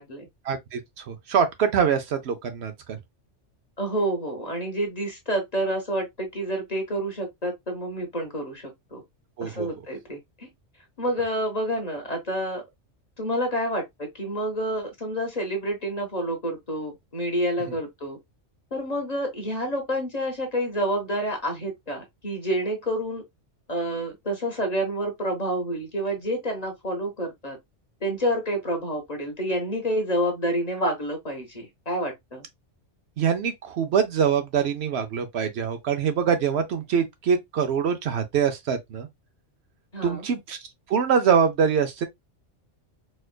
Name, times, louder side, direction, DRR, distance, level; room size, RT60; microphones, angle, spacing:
voice 1, 0.5-3.0 9.4-9.7 17.7-17.8 33.2-39.1 40.0-40.6 40.9-42.1, right 7 dB, 70° right, 0.8 m, -24 dB
voice 2, 3.8-9.0 9.4-10.5 11.0-12.6 13.2-18.2 18.7-23.2 23.7-27.6 28.0-32.4 39.9-40.3, equal, 35° left, 1.1 m, -28 dB
4.3 x 2.4 x 2.2 m
omnidirectional pair, 1.2 m